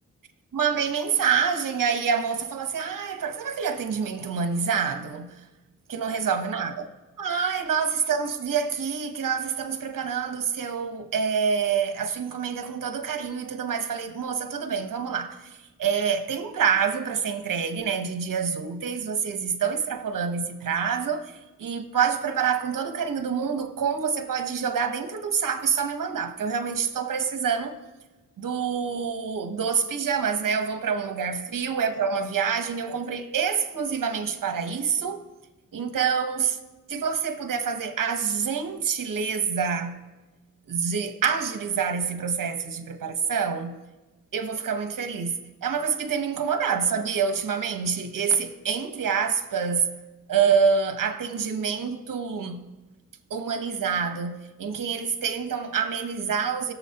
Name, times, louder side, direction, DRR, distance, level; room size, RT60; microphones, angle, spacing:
voice 1, 0.5-5.4 5.9-6.9 7.2-27.7 28.4-35.2 35.7-36.6 36.9-40.0 40.7-43.8 44.3-49.9 50.3-52.7 53.3-56.7, right 6 dB, 70° right, 1.1 m, -27 dB
20.5 x 7.1 x 2.9 m
cardioid pair, 85°, 33 cm